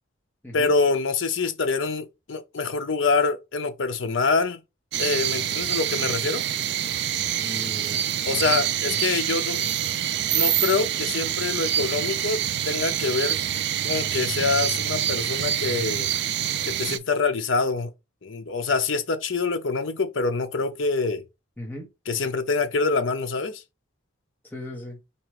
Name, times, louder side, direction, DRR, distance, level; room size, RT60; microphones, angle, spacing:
voice 1, 0.5-4.6 5.0-6.4 8.3-9.6 10.3-13.4 13.8-16.1 16.6-17.9 18.2-21.2 22.1-23.6, left 4 dB, 65° left, 0.7 m, -25 dB
sound 1, 4.9-17.0, right 11 dB, 55° right, 0.3 m, -26 dB
voice 2, 7.4-8.0 8.3-8.7 21.6-21.9 24.4-25.0, left 1 dB, 10° left, 1.1 m, -37 dB
4.3 x 2.5 x 4.7 m
head